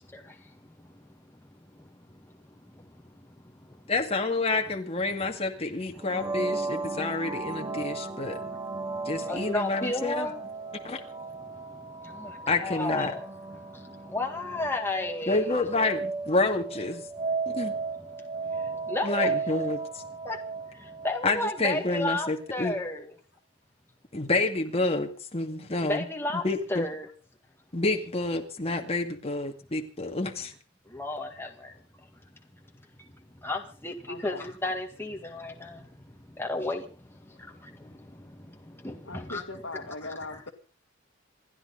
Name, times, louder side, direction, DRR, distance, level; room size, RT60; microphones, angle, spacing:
voice 1, 3.9-8.4 9.1-10.3 10.8-11.0 12.5-13.1 15.3-17.0 17.5-17.7 19.0-20.0 21.2-22.7 24.1-26.1 26.4-26.9 27.7-30.5, left 2 dB, 30° left, 3 dB, 2.2 m, -28 dB
sound 1, 6.0-21.6, right 4 dB, 20° right, 0.9 m, -35 dB
voice 2, 9.3-10.4 12.0-13.6 14.0-15.5 18.9-19.3 20.3-20.4 21.0-23.1 25.9-26.4 26.7-27.1 30.9-31.7 33.4-35.8 36.4-36.8 37.6-37.9 38.2-38.4 38.8-39.4 40.0-40.5, left 2 dB, 10° left, 2 dB, 1.9 m, -32 dB
voice 3, 34.1-34.4 39.1-40.5, left 2 dB, 65° left, 6 dB, 2.1 m, -39 dB
28.0 x 11.0 x 4.1 m, 0.36 s
head